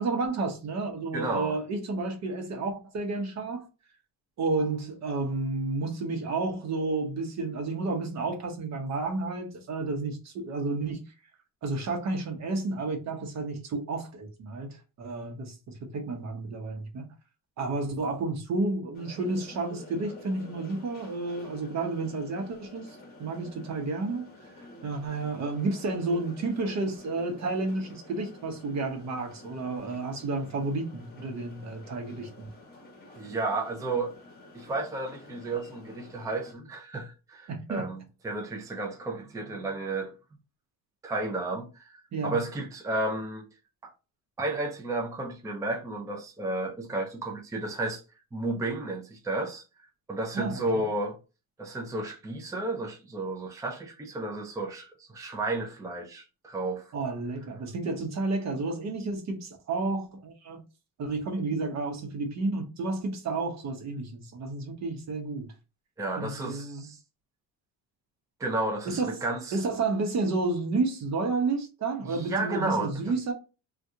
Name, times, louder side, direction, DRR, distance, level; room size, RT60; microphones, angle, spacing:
voice 1, 0.0-3.7 4.4-11.0 11.6-17.1 17.6-24.3 24.5-32.5 37.5-37.9 42.1-42.4 50.3-50.8 56.9-60.6 61.0-65.5 66.2-66.9 68.9-69.2 69.5-73.3, right 3 dB, 55° right, 1.0 m, -31 dB
voice 2, 1.1-1.6 33.2-34.1 34.5-40.1 41.0-43.4 43.8-43.9 44.4-48.0 48.3-49.6 50.1-51.2 51.6-56.9 66.0-67.0 68.4-69.6 72.0-73.1, right 2 dB, 10° right, 0.5 m, -32 dB
sound 1, 18.9-36.5, left 2 dB, 30° left, 1.2 m, -50 dB
2.7 x 2.5 x 3.6 m
cardioid pair, 120°, 34 cm